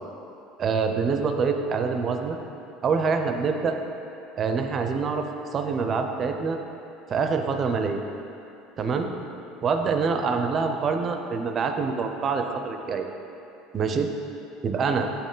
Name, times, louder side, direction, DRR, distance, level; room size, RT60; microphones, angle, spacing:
voice 1, 0.6-2.4 2.8-3.8 4.4-6.6 7.1-8.0 8.8-9.1 9.6-13.1 13.7-14.1 14.6-15.1, right 5 dB, 25° right, 5 dB, 0.4 m, -25 dB
8.6 x 5.4 x 3.8 m, 2.8 s
cardioid pair, 170°, 0 cm